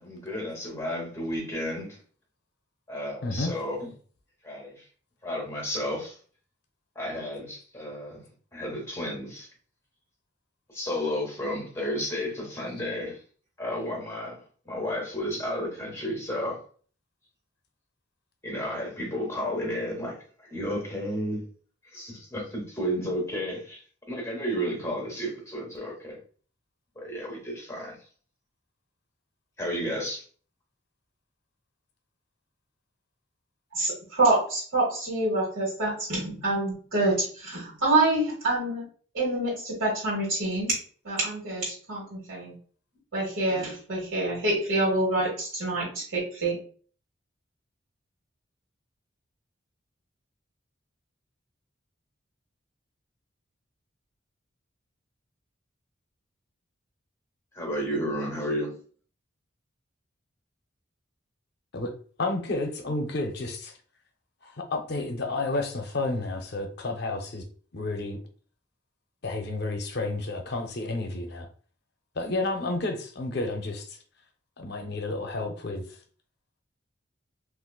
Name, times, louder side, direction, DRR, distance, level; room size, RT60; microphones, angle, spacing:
voice 1, 0.0-2.0 2.9-3.9 4.4-4.7 5.2-6.1 7.0-8.2 8.5-9.5 10.7-13.2 13.6-14.4 14.7-16.6 18.4-20.2 20.5-21.4 21.9-23.8 24.1-26.2 27.0-28.0 29.6-30.2 57.6-58.7, equal, 15° left, 0.9 m, -32 dB
voice 2, 3.2-3.6 61.7-61.9 62.2-63.7 64.4-67.4 67.7-68.2 69.2-71.5 72.2-73.9 74.6-75.8, left 2 dB, 55° left, 0.6 m, -31 dB
voice 3, 33.7-38.8 39.1-40.7 41.0-42.5 43.1-46.6, right 2 dB, 75° right, 1.3 m, -26 dB
3.7 x 2.4 x 2.2 m
head